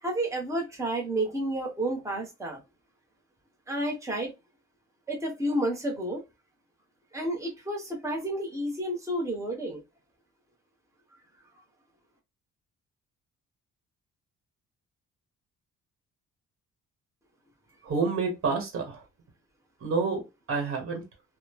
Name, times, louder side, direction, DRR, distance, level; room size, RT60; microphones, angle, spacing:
voice 1, 0.0-2.6 3.7-4.3 5.1-6.2 7.1-9.8, right 1 dB, 10° right, -1 dB, 1.0 m, -30 dB
voice 2, 17.8-19.0 19.8-20.2 20.5-21.0, right 4 dB, 45° right, 3 dB, 1.2 m, -28 dB
3.0 x 2.2 x 2.2 m, 0.23 s
cardioid pair, 90°, 30 cm